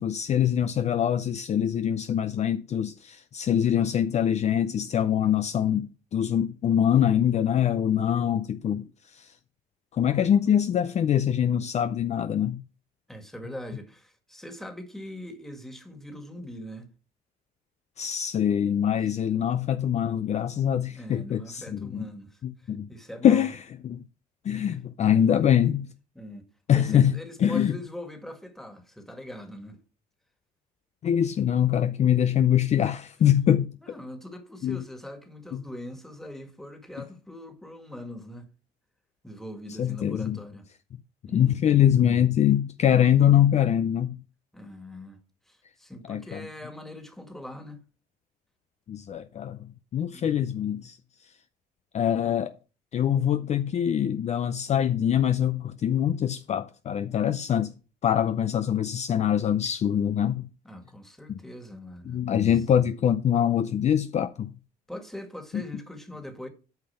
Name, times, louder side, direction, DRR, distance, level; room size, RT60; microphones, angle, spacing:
voice 1, 0.0-9.3 9.9-12.6 18.0-22.1 22.4-22.9 23.2-24.0 24.4-25.9 26.7-27.8 31.0-33.7 34.6-34.8 35.5-35.6 39.8-40.4 41.3-44.2 46.1-46.4 48.9-49.6 49.9-51.0 51.9-52.6 52.9-57.7 58.0-60.5 61.3-61.4 62.1-64.5 65.5-65.6, left 9 dB, 40° left, 0.5 m, -24 dB
voice 2, 13.1-16.9 20.9-22.4 22.9-23.5 26.2-29.8 33.8-38.5 39.2-40.7 41.3-41.6 44.5-45.2 45.5-47.8 50.1-50.8 60.6-62.5 64.9-66.5, left 1 dB, ahead, 1.9 m, -42 dB
8.9 x 5.6 x 5.7 m
cardioid pair, 110°, 17 cm